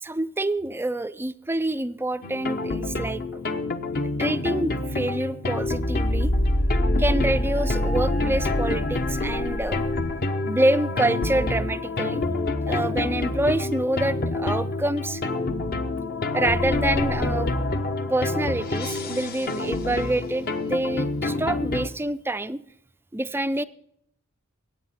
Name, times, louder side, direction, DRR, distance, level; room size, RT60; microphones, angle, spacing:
voice 1, 0.0-3.2 4.2-6.3 7.0-9.8 10.4-12.2 12.7-15.2 16.3-17.5 18.1-22.6 23.1-23.6, right 1 dB, 10° right, 13 dB, 0.4 m, -26 dB
sound 1, 2.2-21.9, left 2 dB, 45° left, 1.0 m, -26 dB
21.5 x 8.9 x 4.3 m, 0.72 s
head